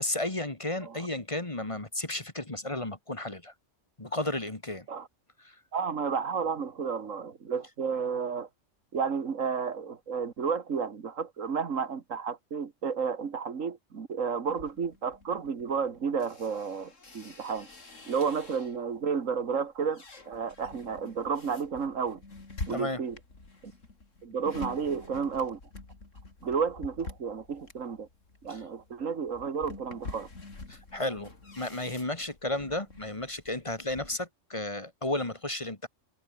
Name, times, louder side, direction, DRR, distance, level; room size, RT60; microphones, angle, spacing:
voice 1, 0.0-3.5 4.0-4.9 5.4-5.6 22.7-23.0 28.5-28.6 30.7-35.9, left 2 dB, 25° left, 1.9 m, -33 dB
voice 2, 5.7-8.5 8.9-17.7 18.1-22.2 22.7-23.2 23.6-23.7 24.2-25.6 26.4-28.1 28.4-30.3, right 6 dB, 90° right, 2.0 m, -32 dB
sound 1, 14.5-19.0 19.4-34.2, left 3 dB, 75° left, 3.8 m, -47 dB
omnidirectional pair, 1.3 m